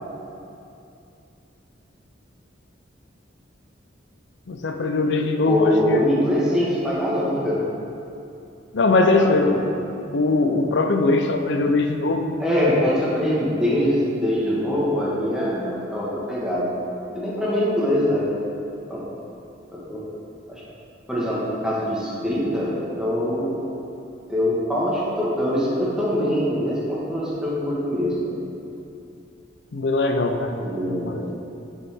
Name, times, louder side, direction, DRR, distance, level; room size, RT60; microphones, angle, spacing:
voice 1, 4.5-6.0 8.7-9.8 10.1-12.4 29.7-31.2, left 3 dB, 70° left, 6 dB, 0.6 m, -21 dB
voice 2, 5.4-7.6 9.2-9.6 12.4-16.7 17.1-18.4 18.9-19.0 19.7-20.0 20.5-20.6 21.1-23.6 24.3-28.3 30.6-31.2, equal, 5° right, -8 dB, 1.4 m, -23 dB
9.3 x 5.5 x 3.6 m, 2.7 s
head